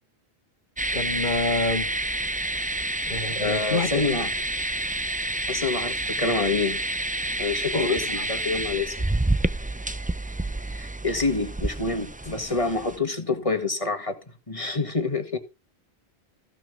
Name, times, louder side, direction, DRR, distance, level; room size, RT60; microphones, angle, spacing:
sound 1, 0.8-13.0, right 2 dB, 10° right, 0.4 m, -29 dB
voice 1, 0.9-1.9 3.1-4.2 7.7-8.3, left 3 dB, 50° left, 1.7 m, -28 dB
voice 2, 3.4-4.3 5.5-6.8 7.4-9.1 10.7-14.2 14.5-15.4, left 3 dB, 35° left, 1.9 m, -27 dB
15.0 x 6.0 x 6.1 m
omnidirectional pair, 1.0 m